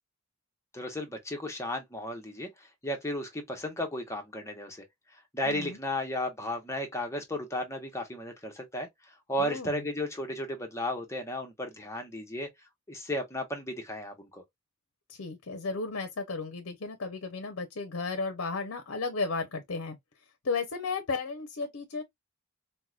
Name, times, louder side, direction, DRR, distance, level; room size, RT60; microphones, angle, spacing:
voice 1, 0.7-4.8 5.3-12.5 12.9-14.4, left 1 dB, 15° left, 0.7 m, -34 dB
voice 2, 5.4-5.8 9.4-9.7 15.1-20.0 20.4-22.0, left 4 dB, 60° left, 0.6 m, -34 dB
4.5 x 2.1 x 2.3 m
head